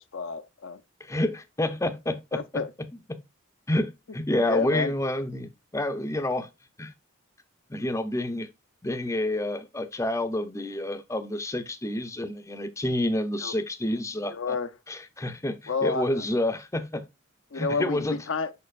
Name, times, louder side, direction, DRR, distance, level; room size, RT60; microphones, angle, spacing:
voice 1, 0.0-0.8 2.3-2.7 4.5-4.9 13.4-13.5 14.3-14.7 15.7-16.2 17.5-18.5, left 4 dB, 65° left, 0.6 m, -30 dB
voice 2, 1.0-3.2 3.7-6.5 6.8-6.9 7.7-8.5 8.8-14.5 14.9-17.1 17.5-18.2, left 1 dB, 15° left, 0.6 m, -29 dB
6.6 x 6.0 x 2.4 m
head